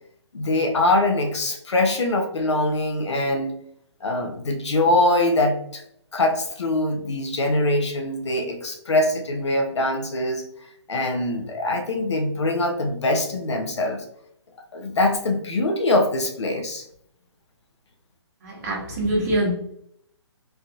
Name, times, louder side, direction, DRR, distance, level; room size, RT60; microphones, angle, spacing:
voice 1, 0.3-3.5 4.0-5.8 6.1-10.4 10.9-14.0 14.7-16.8, left 2 dB, 75° left, 3 dB, 0.8 m, -23 dB
voice 2, 18.4-19.5, right 1 dB, 35° right, -3 dB, 1.2 m, -24 dB
3.4 x 2.3 x 2.7 m, 0.70 s
hypercardioid pair, 150°, 15 cm